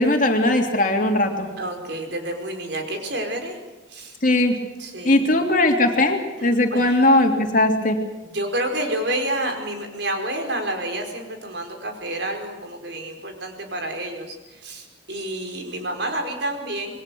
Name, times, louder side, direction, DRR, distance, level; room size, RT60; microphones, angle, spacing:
voice 1, 0.0-1.5 4.2-4.5 5.0-8.0, left 1 dB, 40° left, 3 dB, 3.0 m, -19 dB
voice 2, 1.6-3.6 3.9-4.2 4.8-5.3 6.4-7.2 8.2-17.0, right 1 dB, 60° right, 4 dB, 4.9 m, -29 dB
27.5 x 22.5 x 7.0 m, 1.1 s
head